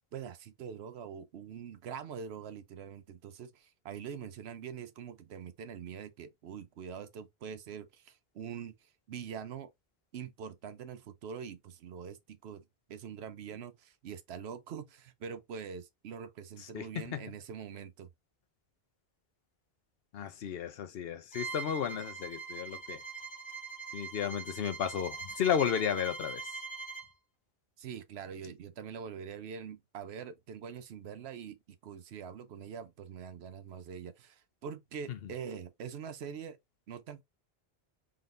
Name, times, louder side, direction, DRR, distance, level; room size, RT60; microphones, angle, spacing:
voice 1, 0.1-9.7 10.1-12.6 12.9-18.1 27.8-36.6 36.9-37.2, right 7 dB, 90° right, 0.9 m, -44 dB
voice 2, 16.6-17.2 20.1-23.0 23.9-26.5 35.1-35.2, left 8 dB, 70° left, 0.9 m, -33 dB
Bowed string instrument, 21.3-27.1, right 5 dB, 30° left, 1.2 m, -42 dB
3.9 x 3.7 x 2.5 m
omnidirectional pair, 1.0 m